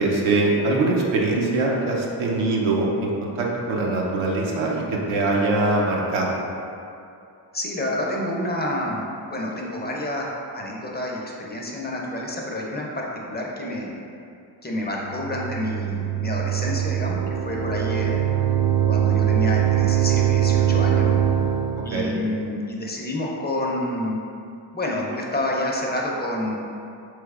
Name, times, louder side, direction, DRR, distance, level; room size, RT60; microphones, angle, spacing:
voice 1, 0.0-6.4 21.9-22.1, right 2 dB, 80° right, -2 dB, 0.7 m, -22 dB
voice 2, 7.5-14.0 14.6-18.2 18.9-21.1 21.8-24.2 24.7-26.5, left 1 dB, 20° left, -2 dB, 0.5 m, -28 dB
sound 1, 15.1-21.9, right 10 dB, 40° right, 0.4 m, -22 dB
3.2 x 3.1 x 2.4 m, 2.5 s
supercardioid pair, 55°, 47 cm